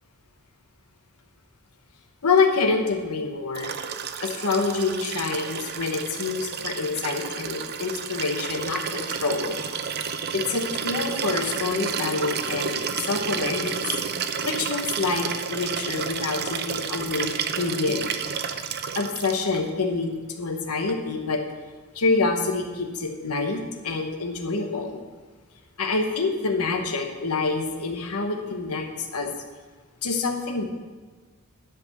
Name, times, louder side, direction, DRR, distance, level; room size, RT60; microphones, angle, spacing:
voice 1, 2.2-3.8 4.2-9.6 10.3-12.8 13.1-13.8 14.4-18.1 18.9-21.4 21.9-25.0 25.8-29.3 30.0-30.7, left 4 dB, 85° left, 4 dB, 1.1 m, -26 dB
Liquid, 3.5-19.6 20.9-21.0, right 6 dB, 45° right, 0.6 m, -31 dB
11.0 x 5.2 x 7.3 m, 1.4 s
head